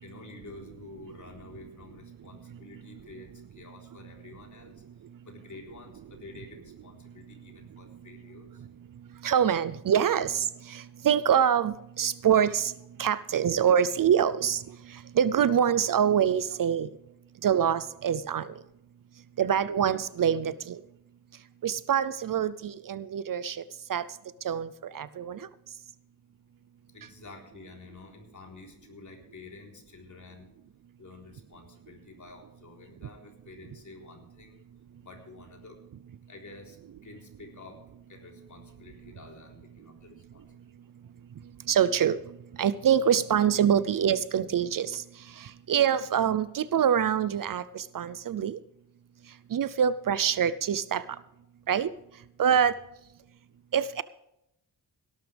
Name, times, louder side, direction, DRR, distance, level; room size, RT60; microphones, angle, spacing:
voice 1, 0.0-4.7 5.2-8.6 26.9-30.5 31.0-34.6 35.0-35.8 36.3-36.8 37.0-37.8 38.1-40.7, left 3 dB, 45° left, 1 dB, 3.9 m, -49 dB
voice 2, 9.2-12.7 13.0-14.6 15.2-16.9 17.4-18.5 19.4-20.8 21.6-23.6 23.9-24.0 24.4-24.7 24.9-25.4 41.7-42.2 42.6-45.0 45.7-48.6 49.5-51.0 51.7-51.9 52.4-52.7 53.7-54.0, right 8 dB, 50° right, 17 dB, 0.6 m, -25 dB
17.5 x 12.0 x 3.4 m, 0.83 s
cardioid pair, 100°, 41 cm